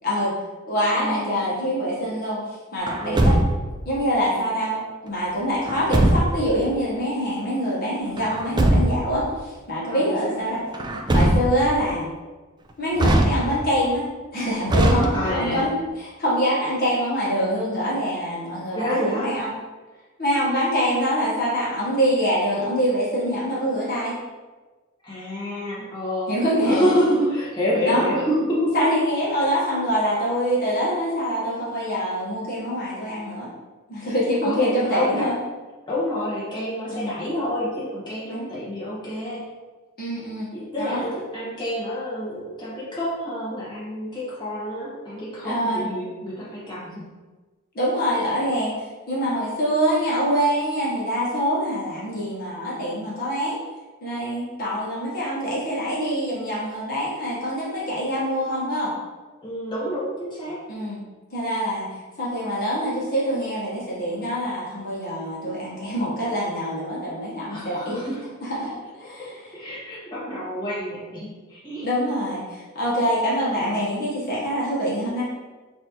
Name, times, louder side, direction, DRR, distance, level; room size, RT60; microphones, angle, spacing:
voice 1, 0.0-0.3 0.7-3.4 3.8-10.6 11.1-12.1 12.8-19.5 20.2-24.1 26.3-26.9 27.9-28.1 28.7-33.5 33.9-35.3 36.9-37.1 38.3-38.5 40.0-40.5 40.8-41.0 45.4-45.8 47.7-53.6 54.0-58.9 60.7-61.0 61.3-61.9 62.2-68.0 68.4-69.3 71.8-75.2, equal, 45° left, -8 dB, 1.1 m, -25 dB
voice 2, 1.0-1.5 3.0-3.4 9.9-10.6 14.8-15.7 18.7-19.3 25.0-28.8 34.4-35.3 35.9-39.5 40.5-47.1 59.4-60.6 67.5-68.3 69.2-69.3 69.5-71.9, equal, 20° left, -8 dB, 1.2 m, -28 dB
Truck, 2.9-3.8 5.7-6.5 8.2-9.1 10.7-11.8 13.0-13.8 14.7-15.6, right 1 dB, 20° right, 0.3 m, -20 dB
6.0 x 2.6 x 2.9 m, 1.3 s
head